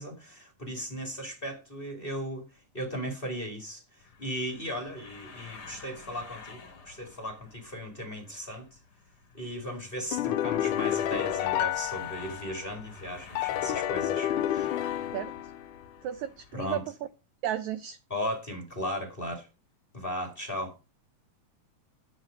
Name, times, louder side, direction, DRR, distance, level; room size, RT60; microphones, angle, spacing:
voice 1, 0.0-2.4 2.7-3.8 4.2-8.8 9.3-14.7 16.5-16.8 18.1-19.5 19.9-20.7, equal, 20° left, 2.0 m, -36 dB
sound 1, 4.0-16.8, left 5 dB, 35° left, 1.9 m, -50 dB
sound 2, 10.1-12.7 13.4-15.8, left 12 dB, 75° left, 2.1 m, -30 dB
voice 2, 16.0-16.8 17.4-18.0, right 11 dB, 80° right, 1.7 m, -33 dB
10.0 x 8.1 x 5.0 m
omnidirectional pair, 3.9 m